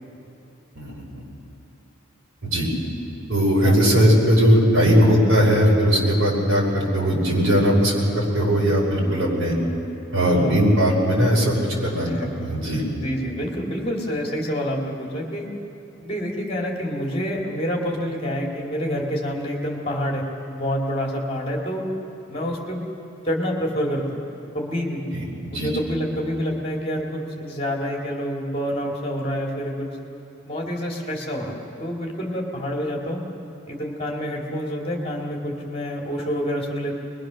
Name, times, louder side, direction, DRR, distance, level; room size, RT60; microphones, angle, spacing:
voice 1, 0.7-1.2 2.4-2.7 3.3-9.5 10.1-11.5 11.8-12.1 12.4-12.8 25.1-25.7, equal, 80° right, -3 dB, 5.7 m, -19 dB
voice 2, 3.6-4.1 10.2-10.6 12.1-12.3 13.0-15.5 16.0-21.9 22.3-22.9 23.2-24.2 24.5-25.0 25.5-29.9 30.5-33.2 33.7-36.9, equal, 30° left, -1 dB, 2.5 m, -27 dB
22.5 x 22.0 x 6.4 m, 3.0 s
head